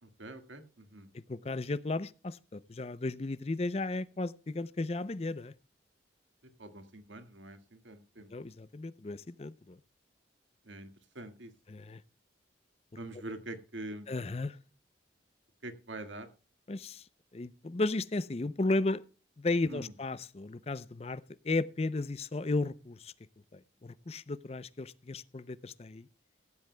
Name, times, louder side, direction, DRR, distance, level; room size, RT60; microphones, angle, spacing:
voice 1, 0.0-1.1 6.6-8.3 10.7-10.9 11.1-11.5 13.0-14.0 15.6-16.3 19.7-19.9, right 2 dB, 90° right, 1.8 m, -44 dB
voice 2, 1.1-5.5 8.3-9.8 11.7-12.0 13.1-13.2 14.1-14.6 16.7-17.1 17.3-19.0 19.4-23.1 23.5-26.1, left 2 dB, 35° left, 0.5 m, -34 dB
15.5 x 15.5 x 2.2 m
head